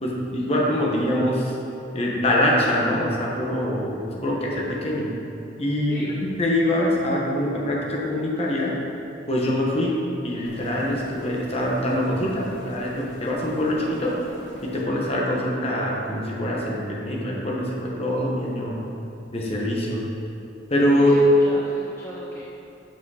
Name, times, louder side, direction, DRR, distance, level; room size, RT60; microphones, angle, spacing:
voice 1, 0.0-1.5 1.9-5.2 5.6-8.8 9.3-14.2 14.6-18.9 19.3-20.1 20.7-21.2, left 1 dB, 30° left, -3 dB, 1.3 m, -24 dB
sound 1, 10.5-14.9, left 1 dB, 85° left, 1.2 m, -42 dB
voice 2, 21.0-22.4, equal, 10° left, -7 dB, 0.7 m, -38 dB
7.3 x 6.3 x 4.9 m, 2.7 s
head